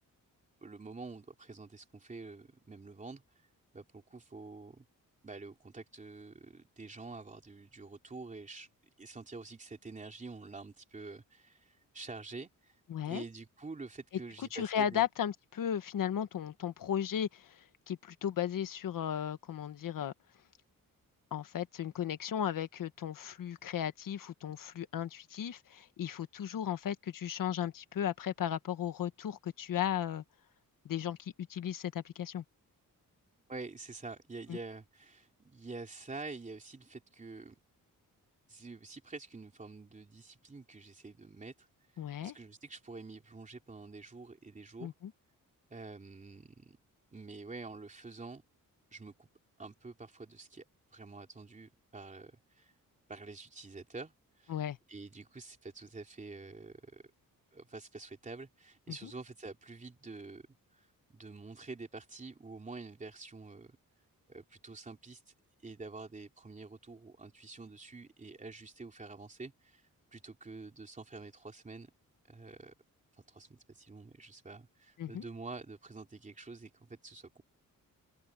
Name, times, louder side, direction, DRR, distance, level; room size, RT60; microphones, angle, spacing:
voice 1, 0.6-3.2 3.7-4.8 5.2-8.7 9.0-12.7 13.0-15.1 33.5-37.6 38.5-41.7 41.9-44.9 45.7-46.8 47.1-48.4 48.9-49.3 49.6-50.6 50.9-52.7 53.1-54.6 54.9-57.0 57.5-60.5 60.7-63.8 64.3-65.2 65.6-69.8 70.1-71.9 72.3-72.7 73.3-77.4, right 3 dB, 20° right, 3.4 m, -47 dB
voice 2, 12.9-13.2 14.5-20.1 21.3-30.2 30.8-32.4 34.5-34.6 42.0-42.3 44.8-45.1 54.5-54.8 59.0-59.1 75.0-75.2, left 9 dB, 70° left, 1.4 m, -35 dB
open air
wide cardioid pair, 175°, 34 cm